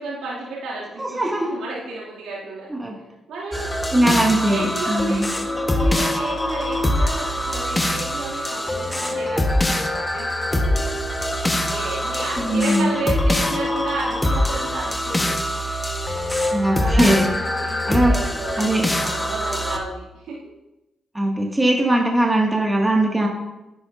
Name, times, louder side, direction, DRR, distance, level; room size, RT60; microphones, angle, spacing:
voice 1, 0.0-2.7 3.3-5.3 5.6-10.8 11.3-15.3 16.0-16.3 16.8-20.4, right 3 dB, 85° right, -7 dB, 2.5 m, -32 dB
voice 2, 1.0-1.5 2.7-2.9 3.9-5.3 12.4-12.9 16.5-17.3 17.9-18.1 18.6-18.9 21.1-23.3, right 1 dB, 15° right, -1 dB, 2.0 m, -20 dB
sound 1, 3.5-19.8, left 1 dB, 20° left, 1.3 m, -23 dB
10.5 x 9.8 x 2.6 m, 0.96 s
supercardioid pair, 55°, 0 cm